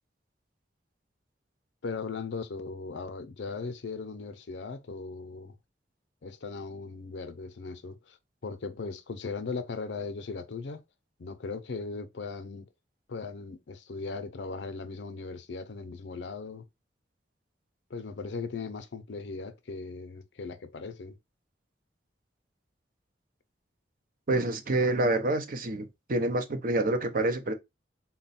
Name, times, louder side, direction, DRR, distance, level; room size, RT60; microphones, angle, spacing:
voice 1, 1.8-5.6 6.2-8.2 8.4-10.8 11.2-12.7 13.1-16.6 17.9-21.2, left 4 dB, 75° left, 0.6 m, -38 dB
voice 2, 24.3-27.5, right 2 dB, 50° right, 0.7 m, -27 dB
3.9 x 2.2 x 4.1 m
head